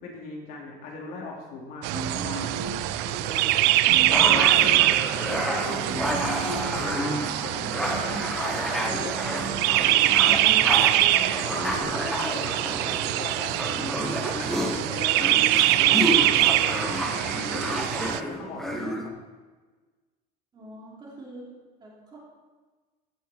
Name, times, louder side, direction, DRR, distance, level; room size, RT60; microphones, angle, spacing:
voice 1, 0.0-2.5 3.0-4.4 5.2-6.9 7.2-10.7 11.1-14.0 14.6-17.7 18.2-19.1, left 3 dB, 55° left, -2 dB, 2.6 m, -39 dB
sound 1, 1.8-18.2, right 15 dB, 70° right, 0.5 m, -24 dB
sound 2, 1.9-3.0 3.9-5.0 5.9-7.0 7.9-8.4 9.2-9.7, right 3 dB, 45° right, 1.8 m, -36 dB
sound 3, 4.1-19.1, equal, ahead, 0.9 m, -30 dB
voice 2, 20.5-21.5 21.8-22.2, right 1 dB, 25° right, -4 dB, 3.2 m, -44 dB
16.5 x 6.3 x 4.3 m, 1.3 s
cardioid pair, 165°, 18 cm